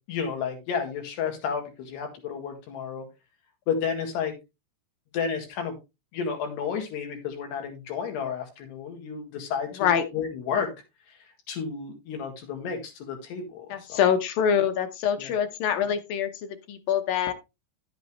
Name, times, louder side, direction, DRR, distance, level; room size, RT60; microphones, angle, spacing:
voice 1, 0.1-3.1 3.7-4.3 5.1-5.8 6.1-10.7 11.5-14.0 15.2-15.3, left 6 dB, 90° left, 4 dB, 4.1 m, -31 dB
voice 2, 13.7-17.3, left 8 dB, 70° left, 8 dB, 2.4 m, -25 dB
11.0 x 8.0 x 3.2 m, 0.24 s
omnidirectional pair, 4.7 m